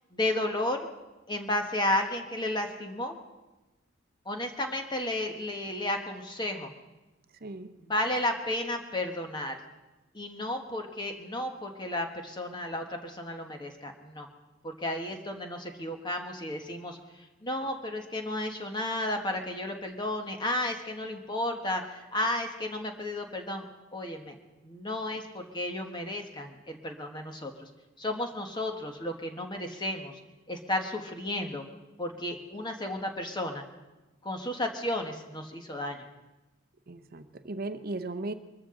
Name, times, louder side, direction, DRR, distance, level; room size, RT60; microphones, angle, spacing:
voice 1, 0.1-0.9 1.3-3.2 4.2-6.7 7.8-9.6 10.1-14.3 14.6-23.6 23.9-24.4 24.6-27.7 28.0-30.2 30.5-31.6 32.0-33.6 34.2-36.1, left 1 dB, 20° left, 4 dB, 1.3 m, -33 dB
voice 2, 7.4-7.7 36.9-38.3, right 2 dB, 45° right, 10 dB, 0.8 m, -36 dB
23.5 x 13.5 x 3.8 m, 1.1 s
head